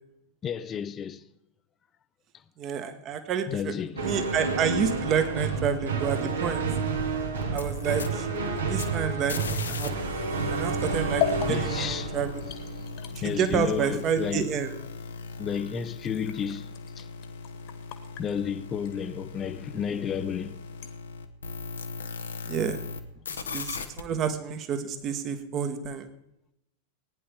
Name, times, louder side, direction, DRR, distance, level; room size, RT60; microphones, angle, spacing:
voice 1, 0.4-1.2 3.5-4.3 11.5-12.2 12.8-12.9 13.2-14.5 15.4-16.7 17.0-17.1 18.2-20.6, left 8 dB, 25° left, 0.8 m, -32 dB
voice 2, 2.6-3.7 4.0-6.6 7.5-8.3 8.5-10.1 10.5-12.4 13.1-14.7 22.5-22.8 23.3-26.1, right 7 dB, 30° right, 1.6 m, -29 dB
sound 1, 4.0-13.4, right 4 dB, 70° right, 2.4 m, -30 dB
sound 2, 7.4-9.9 10.1-23.0 23.2-24.0, left 4 dB, 70° left, 1.2 m, -39 dB
sound 3, 11.1-20.9, left 10 dB, 45° left, 1.7 m, -39 dB
19.0 x 10.0 x 3.6 m
figure-of-eight pair, 90°, 0 cm